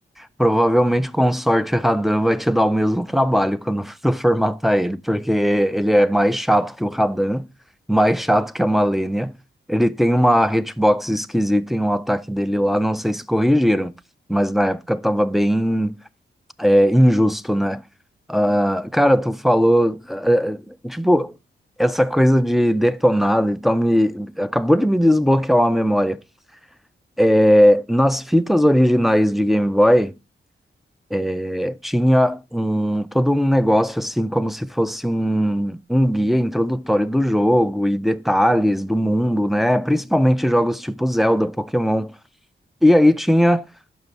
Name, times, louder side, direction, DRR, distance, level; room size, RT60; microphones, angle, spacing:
voice 1, 0.4-7.5 7.9-9.3 9.7-13.9 14.3-15.9 16.6-17.8 18.3-21.3 21.8-26.2 27.2-30.1 31.1-42.1 42.8-43.7, equal, ahead, 0.3 m, -18 dB
6.1 x 5.5 x 4.4 m
wide cardioid pair, 135°, 20 cm